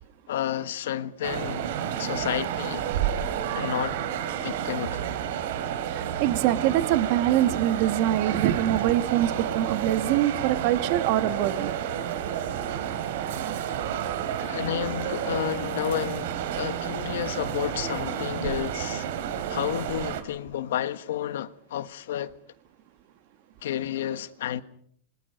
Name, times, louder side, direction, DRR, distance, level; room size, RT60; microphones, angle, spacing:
voice 1, 0.3-1.6 2.0-2.9 3.5-4.1 4.4-5.0 14.4-19.1 19.5-22.3 23.6-24.6, left 11 dB, 85° left, 1.4 m, -31 dB
sound 1, 1.2-20.2, right 9 dB, 60° right, 3.0 m, -30 dB
voice 2, 5.9-11.7, right 13 dB, 40° right, 1.3 m, -24 dB
28.0 x 24.0 x 5.2 m
supercardioid pair, 175°, 0 cm